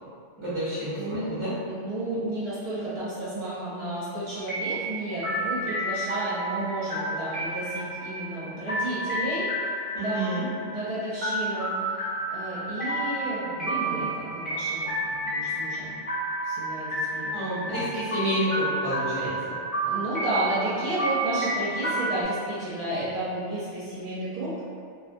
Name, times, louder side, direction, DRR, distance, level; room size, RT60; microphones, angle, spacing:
voice 1, 0.4-1.5 9.9-10.4 17.3-19.3, right 1 dB, 30° right, -11 dB, 0.7 m, -29 dB
voice 2, 0.9-1.3 1.6-10.4 10.7-16.0 16.4-17.3 17.6-17.9 19.8-24.6, right 1 dB, 65° right, -10 dB, 0.3 m, -32 dB
sound 1, 4.4-22.2, right 1 dB, 30° left, 0.9 m, -31 dB
2.3 x 2.1 x 2.5 m, 2.3 s
omnidirectional pair, 1.3 m